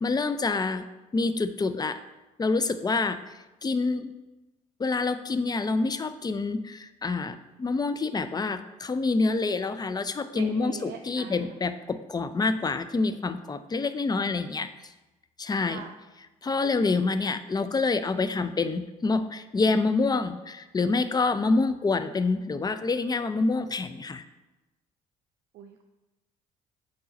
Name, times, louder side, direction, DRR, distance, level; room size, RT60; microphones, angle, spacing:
voice 1, 0.0-0.9 1.1-2.0 2.4-4.1 4.8-14.7 15.4-15.8 16.4-24.2, left 3 dB, 20° left, 11 dB, 0.5 m, -27 dB
voice 2, 10.3-11.5 15.6-15.9 25.5-25.9, right 7 dB, 60° right, 3 dB, 0.5 m, -42 dB
6.1 x 4.5 x 4.1 m, 1.1 s
hypercardioid pair, 55°, 19 cm